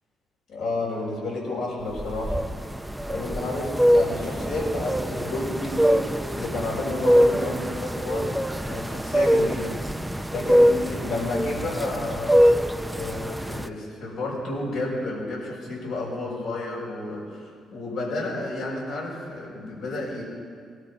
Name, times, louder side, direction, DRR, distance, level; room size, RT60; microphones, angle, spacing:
voice 1, 0.5-2.4 3.1-6.0 6.3-8.4 8.7-9.8 10.3-12.4 12.9-20.2, left 2 dB, 80° left, -5 dB, 5.7 m, -31 dB
sound 1, 1.9-13.7, equal, 5° right, 0.6 m, -23 dB
19.5 x 12.5 x 5.5 m, 2.1 s
supercardioid pair, 65°, 0 cm